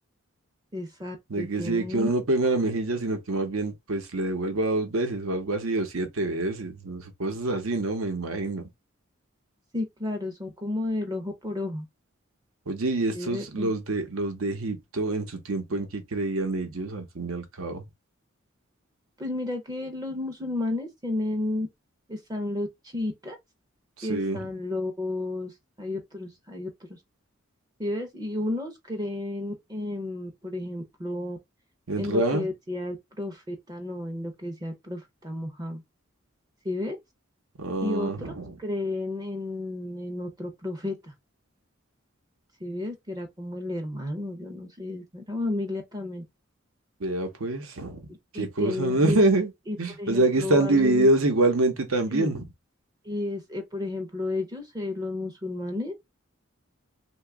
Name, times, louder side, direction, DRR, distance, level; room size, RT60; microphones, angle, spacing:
voice 1, 0.7-2.1 9.7-11.8 13.2-13.7 19.2-21.7 22.1-23.4 24.0-25.5 25.8-26.7 27.8-31.4 32.0-35.8 36.6-37.0 37.8-38.3 38.6-41.1 42.6-46.2 48.3-49.4 49.7-51.1 52.1-52.3 53.1-55.9, left 2 dB, 20° right, 0.5 m, -32 dB
voice 2, 1.3-8.6 12.7-17.8 24.0-24.5 31.9-32.5 37.6-38.6 47.0-48.1 48.3-49.5 49.8-52.5, right 2 dB, 85° right, 0.8 m, -26 dB
2.9 x 2.2 x 3.4 m
head